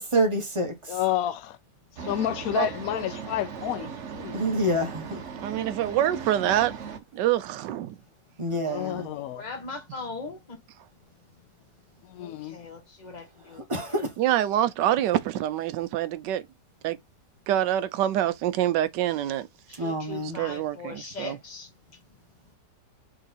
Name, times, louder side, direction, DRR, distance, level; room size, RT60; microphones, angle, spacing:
voice 1, 0.0-1.0 4.3-5.2 8.4-9.1 13.7-14.1 19.8-20.4, right 1 dB, 25° right, 0.8 m, -27 dB
voice 2, 0.9-1.6 1.9-4.4 8.6-9.4 12.0-12.6, left 12 dB, 70° left, 0.9 m, -30 dB
sound 1, 2.0-7.0, right 6 dB, 50° right, 1.0 m, -38 dB
voice 3, 5.4-6.8 7.1-8.0 14.2-16.4 16.8-17.0 17.5-19.5 20.4-21.4, right 12 dB, 75° right, 1.2 m, -25 dB
voice 4, 8.5-10.6 12.2-14.0 19.7-21.7, left 3 dB, 25° left, 1.2 m, -40 dB
3.8 x 3.4 x 4.0 m
omnidirectional pair, 1.9 m